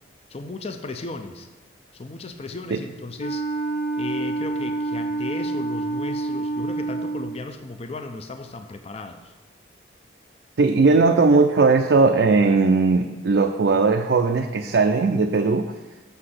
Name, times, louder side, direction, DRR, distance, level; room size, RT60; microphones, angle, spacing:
voice 1, 0.3-1.5 1.9-3.4 4.0-9.3, left 3 dB, 35° left, 7 dB, 0.5 m, -35 dB
Wind instrument woodwind instrument, 3.2-7.4, right 2 dB, 55° left, 0.7 m, -27 dB
voice 2, 10.6-15.7, right 4 dB, 70° right, 4 dB, 0.4 m, -18 dB
6.8 x 5.7 x 6.5 m, 1.2 s
head